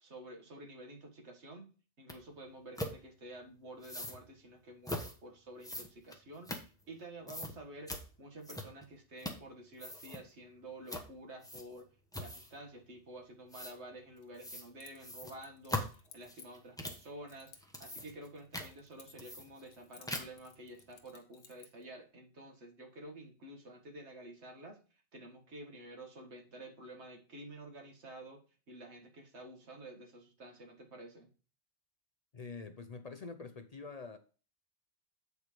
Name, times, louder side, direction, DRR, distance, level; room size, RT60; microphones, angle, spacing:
voice 1, 0.0-1.7 2.0-11.9 12.2-24.8 25.1-31.3, right 1 dB, 80° right, 2.0 m, -50 dB
sound 1, 2.1-2.2 2.8-3.0 3.8-4.2 4.8-5.1 5.6-7.0 7.3-7.5 7.9-8.0 8.4-8.9 9.2-9.5 9.7-10.2 10.9-11.1 11.4-11.8 12.1-12.6 13.5-13.7 14.4-14.7 15.0-17.1 17.6-18.3 18.5-18.7 19.2-19.8 20.1-20.5, left 1 dB, 5° left, 1.0 m, -41 dB
Keys jangling, 14.2-16.9 17.3-19.3 19.6-21.8, left 6 dB, 80° left, 1.4 m, -59 dB
voice 2, 32.3-34.2, left 4 dB, 45° left, 0.6 m, -46 dB
8.2 x 4.5 x 5.1 m
omnidirectional pair, 1.1 m